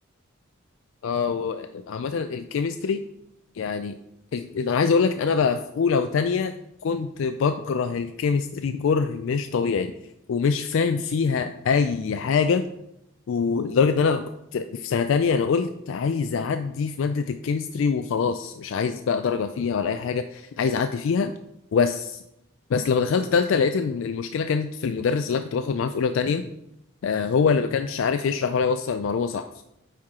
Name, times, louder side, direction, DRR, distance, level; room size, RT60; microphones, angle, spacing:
voice 1, 1.0-3.0 3.5-4.0 4.3-6.6 6.8-9.9 10.3-12.6 13.3-21.3 21.7-22.2 22.7-26.5 27.0-29.6, left 5 dB, 70° left, 9 dB, 0.3 m, -24 dB
9.4 x 4.5 x 3.6 m, 0.82 s
head